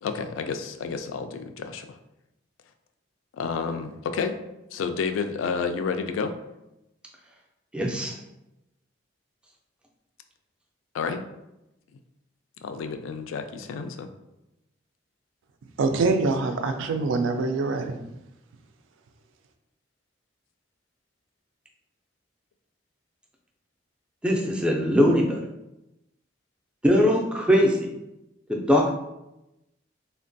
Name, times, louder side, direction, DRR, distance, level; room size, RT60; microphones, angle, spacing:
voice 1, 0.0-1.9 3.3-4.3 4.7-6.3 10.9-11.2 12.6-14.1, left 5 dB, 90° left, 8 dB, 0.3 m, -30 dB
voice 2, 7.7-8.1 24.2-25.4 26.8-27.9 28.5-28.9, equal, 5° right, 0 dB, 0.3 m, -21 dB
voice 3, 15.8-18.0, right 3 dB, 85° right, 6 dB, 0.3 m, -24 dB
3.3 x 2.2 x 2.6 m, 0.92 s
head